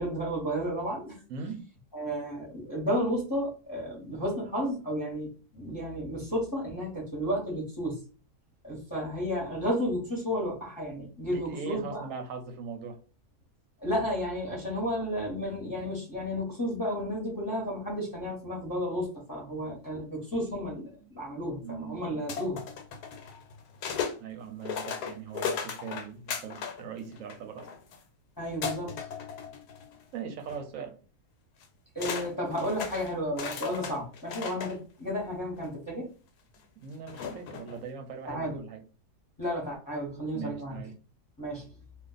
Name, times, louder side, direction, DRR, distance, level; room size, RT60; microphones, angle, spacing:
voice 1, 0.0-1.2 1.9-8.0 8.6-12.1 13.8-22.6 28.4-29.0 31.9-36.1 38.3-38.6 39.4-40.8 41.4-41.7, equal, 15° left, 0.9 m, -32 dB
voice 2, 1.3-1.6 11.3-13.0 21.0-21.1 21.6-22.1 24.2-27.7 30.1-31.0 36.8-38.8 40.3-40.9, right 6 dB, 65° right, 0.9 m, -40 dB
sound 1, 22.3-24.2 24.6-26.8 27.1-28.0 28.6-30.0 30.4-30.6 31.6-31.7 32.0-34.8 35.6-35.7 37.1-37.8, left 6 dB, 85° left, 1.2 m, -36 dB
2.4 x 2.4 x 3.9 m
omnidirectional pair, 1.7 m